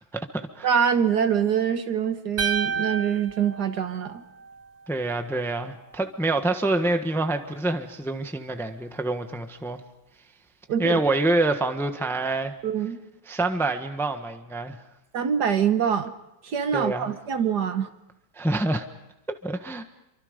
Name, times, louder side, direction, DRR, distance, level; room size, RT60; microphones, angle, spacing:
voice 1, 0.1-0.7 4.9-9.8 10.8-12.5 13.3-14.8 16.7-17.1 18.3-18.8 19.4-19.8, right 2 dB, ahead, 7 dB, 1.1 m, -26 dB
voice 2, 0.6-4.2 10.7-11.0 12.6-13.0 15.1-16.1 16.4-17.9, right 8 dB, 60° right, 9 dB, 1.6 m, -24 dB
sound 1, 2.4-4.6, right 6 dB, 80° right, 0.3 m, -30 dB
28.5 x 24.5 x 5.3 m, 0.93 s
omnidirectional pair, 2.1 m